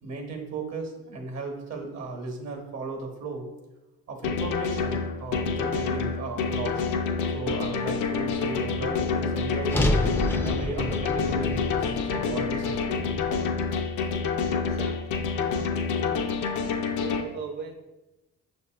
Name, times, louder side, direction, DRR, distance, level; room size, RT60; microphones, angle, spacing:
voice 1, 0.0-3.5 4.1-6.8 7.3-9.9 10.4-12.8, right 3 dB, 60° right, 3 dB, 1.0 m, -35 dB
sound 1, 4.2-17.2, left 5 dB, 85° left, 0.5 m, -28 dB
sound 2, 9.7-14.0, left 1 dB, 10° left, 0.3 m, -29 dB
voice 2, 14.5-15.7 16.7-17.7, right 4 dB, 35° right, 1 dB, 0.6 m, -41 dB
6.2 x 2.6 x 2.3 m, 1.0 s
cardioid pair, 90°, 30 cm